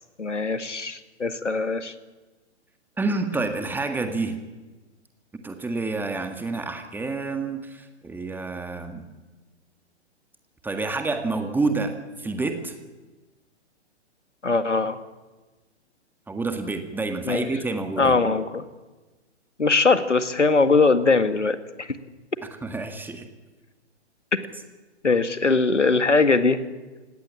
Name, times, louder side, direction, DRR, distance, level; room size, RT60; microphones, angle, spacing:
voice 1, 0.2-1.9 14.4-15.0 17.3-17.5 18.0-18.6 19.6-21.9 25.0-26.6, left 3 dB, 80° left, 11 dB, 2.0 m, -21 dB
voice 2, 3.0-4.4 5.3-9.1 10.6-12.8 16.3-18.2 22.5-23.3, right 3 dB, 5° right, 7 dB, 1.7 m, -28 dB
29.5 x 17.5 x 8.6 m, 1.2 s
figure-of-eight pair, 120°, 35 cm